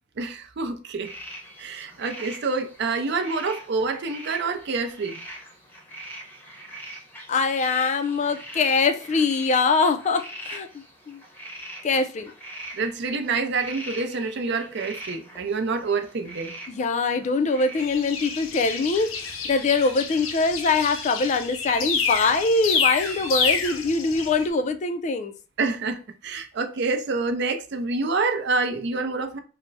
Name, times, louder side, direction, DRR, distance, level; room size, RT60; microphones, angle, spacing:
voice 1, 0.2-1.1 1.6-5.2 12.7-16.6 25.6-29.4, right 4 dB, 60° right, 0.5 m, -27 dB
sound 1, 1.0-20.8, right 1 dB, 10° left, 0.7 m, -43 dB
voice 2, 7.3-10.7 11.1-11.2 11.8-12.3 16.7-19.1 19.4-25.3, left 4 dB, 35° left, 0.4 m, -23 dB
sound 2, 17.8-24.5, left 5 dB, 90° left, 0.6 m, -28 dB
3.3 x 2.0 x 3.9 m
head